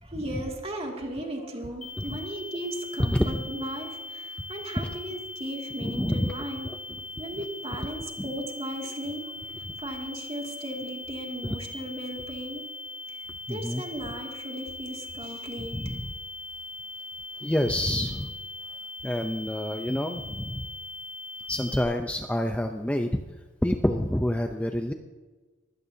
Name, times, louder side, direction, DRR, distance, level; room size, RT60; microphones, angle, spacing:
voice 1, 0.0-6.6 7.2-12.7 13.1-15.9, right 1 dB, 30° right, 1 dB, 2.4 m, -36 dB
sound 1, 1.8-21.8, left 2 dB, 40° left, 3.2 m, -40 dB
voice 2, 3.0-3.5 5.8-6.3 6.6-6.8 7.7-7.8 11.4-11.6 13.5-13.8 15.7-16.1 17.4-18.3 19.0-20.6 21.5-23.2 23.6-24.9, left 1 dB, 5° left, 5 dB, 0.6 m, -27 dB
22.5 x 16.5 x 2.8 m, 1.3 s
head